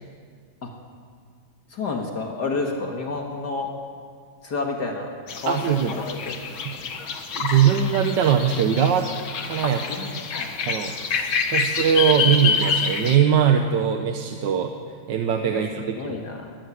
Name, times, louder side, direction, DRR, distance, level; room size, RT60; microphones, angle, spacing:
voice 1, 1.7-3.7 4.4-5.6 6.1-6.9 9.6-10.5 11.5-11.7 15.5-16.6, left 3 dB, 55° left, 1 dB, 2.3 m, -31 dB
sound 1, 5.3-13.2, left 5 dB, 85° left, 2.3 m, -27 dB
voice 2, 5.5-5.9 6.6-6.7 7.3-9.1 9.4-9.8 10.7-14.7 15.1-16.2, right 8 dB, 65° right, 5 dB, 1.6 m, -21 dB
20.0 x 14.5 x 9.8 m, 2.1 s
omnidirectional pair, 2.2 m